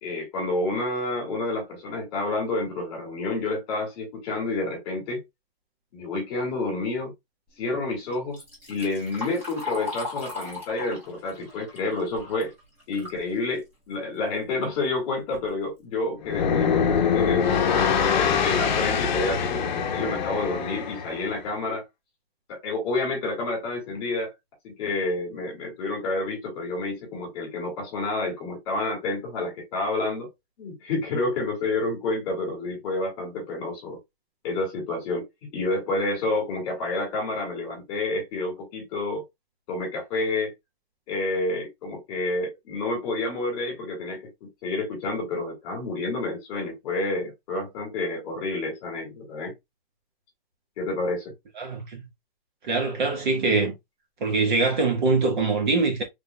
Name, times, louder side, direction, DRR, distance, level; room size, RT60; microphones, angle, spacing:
voice 1, 0.0-5.2 5.9-7.1 7.6-8.4 8.7-12.5 12.9-17.6 18.1-21.8 22.5-24.3 24.6-30.3 30.6-34.0 34.4-39.2 39.7-40.5 41.1-49.5 50.8-51.3, left 2 dB, 25° left, 2.0 m, -29 dB
Liquid, 8.1-13.2 13.6-13.7 14.6-14.7 15.1-15.5 16.1-16.2 16.7-16.8 17.2-17.5, left 3 dB, 5° right, 1.1 m, -38 dB
sound 1, 16.2-21.3, left 7 dB, 45° left, 0.7 m, -24 dB
voice 2, 51.6-52.0 52.6-53.7 54.2-56.1, right 3 dB, 50° right, 1.3 m, -23 dB
3.5 x 3.5 x 2.2 m
hypercardioid pair, 175°, 31 cm